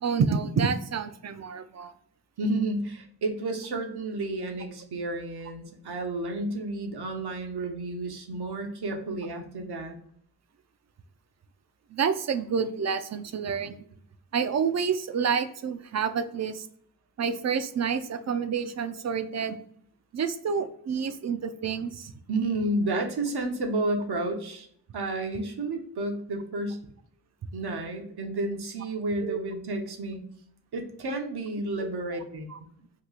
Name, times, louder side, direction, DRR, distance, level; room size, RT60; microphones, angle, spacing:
voice 1, 0.0-1.9 11.9-13.8 14.3-16.7 17.2-19.6 20.1-22.1 29.2-29.4 31.8-31.9 32.5-32.6, right 6 dB, 45° right, 10 dB, 0.4 m, -28 dB
voice 2, 2.4-9.9 22.3-24.7 24.9-26.8 27.5-30.2 30.7-32.5, right 2 dB, 70° right, 3 dB, 0.8 m, -31 dB
2.9 x 2.3 x 3.7 m, 0.65 s
cardioid pair, 45°, 40 cm